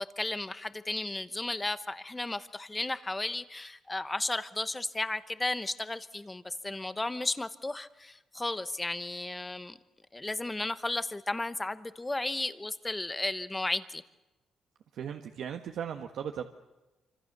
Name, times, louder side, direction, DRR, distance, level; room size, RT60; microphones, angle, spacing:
voice 1, 0.0-9.8 10.1-14.0, left 2 dB, 10° left, 13 dB, 1.0 m, -34 dB
voice 2, 14.9-16.5, right 8 dB, 65° right, 5 dB, 1.5 m, -37 dB
28.0 x 26.0 x 6.8 m, 1.1 s
cardioid pair, 160°, 0 cm